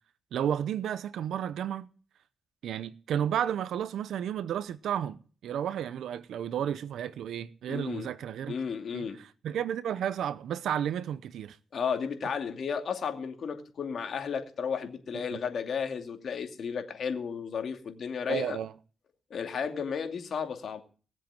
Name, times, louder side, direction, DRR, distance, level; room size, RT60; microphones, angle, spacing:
voice 1, 0.3-1.9 2.6-5.2 5.4-8.5 8.9-11.6 15.3-15.4 18.3-18.7, right 9 dB, 90° right, 0.7 m, -32 dB
voice 2, 7.7-8.1 8.5-9.2 11.7-18.6 19.3-20.8, left 6 dB, 65° left, 2.5 m, -33 dB
19.0 x 7.6 x 9.0 m
cardioid pair, 80°, 0 cm